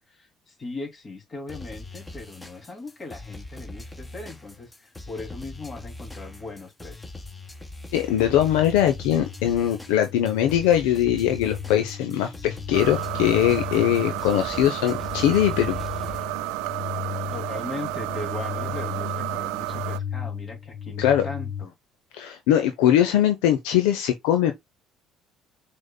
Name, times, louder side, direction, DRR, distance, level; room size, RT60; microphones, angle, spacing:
voice 1, 0.0-7.0 17.3-21.7, left 3 dB, 35° left, 2.8 m, -38 dB
sound 1, 1.5-16.3, left 2 dB, 15° left, 1.8 m, -41 dB
voice 2, 7.9-15.8 21.0-21.3 22.1-24.5, left 11 dB, 75° left, 0.7 m, -21 dB
sound 2, 8.3-21.7, left 8 dB, 60° left, 1.1 m, -36 dB
sound 3, 12.7-20.0, right 19 dB, 75° right, 0.3 m, -31 dB
6.3 x 3.7 x 2.2 m
hypercardioid pair, 60°, 0 cm